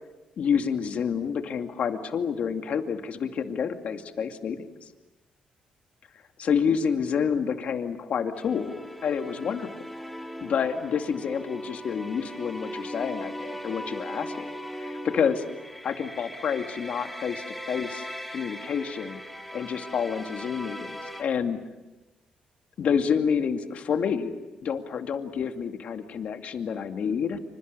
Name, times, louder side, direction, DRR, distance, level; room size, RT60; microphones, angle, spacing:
voice 1, 0.4-4.7 6.4-9.7 10.4-14.5 14.8-15.4 15.8-19.2 19.5-21.6 22.8-24.3 24.6-27.4, left 7 dB, 60° left, 6 dB, 2.4 m, -28 dB
sound 1, 8.3-21.2, equal, 5° left, 2.8 m, -39 dB
28.0 x 26.0 x 6.9 m, 1.1 s
cardioid pair, 90°, 3 cm